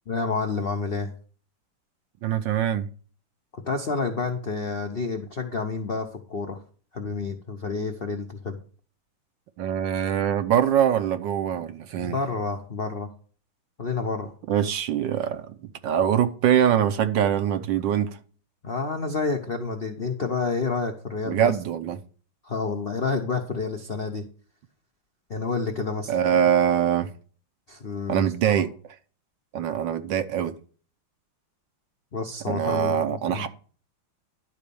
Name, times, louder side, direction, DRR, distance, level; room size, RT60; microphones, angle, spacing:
voice 1, 0.1-1.1 3.5-6.6 6.9-8.6 12.0-13.1 13.8-14.3 18.6-21.6 22.4-24.2 25.3-26.2 27.7-28.6 32.1-33.5, left 4 dB, 55° left, 0.6 m, -29 dB
voice 2, 2.2-2.9 9.6-12.2 14.5-15.5 15.8-18.1 21.2-22.0 26.1-27.1 28.1-28.7 29.5-30.5 32.5-33.5, right 9 dB, 70° right, 1.3 m, -23 dB
11.0 x 4.1 x 6.9 m
omnidirectional pair, 2.3 m